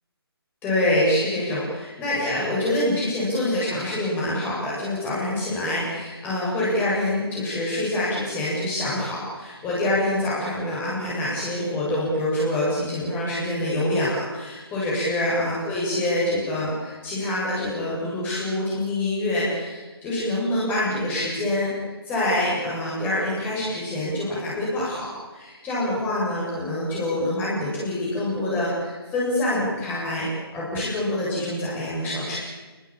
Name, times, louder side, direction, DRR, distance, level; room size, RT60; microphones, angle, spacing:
voice 1, 0.6-30.3 30.5-32.4, left 1 dB, 15° left, -7 dB, 7.9 m, -26 dB
29.0 x 20.0 x 8.9 m, 1.3 s
figure-of-eight pair, 145°, 13 cm